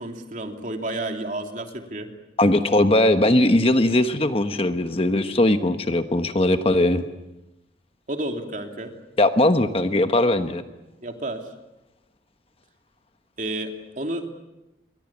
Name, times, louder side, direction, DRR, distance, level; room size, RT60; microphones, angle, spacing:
voice 1, 0.0-2.1 8.1-9.0 11.0-11.4 13.4-14.3, right 1 dB, 45° right, 4 dB, 2.8 m, -31 dB
voice 2, 2.4-7.1 9.2-10.6, left 1 dB, 30° left, 8 dB, 1.2 m, -19 dB
28.5 x 23.5 x 7.3 m, 0.96 s
head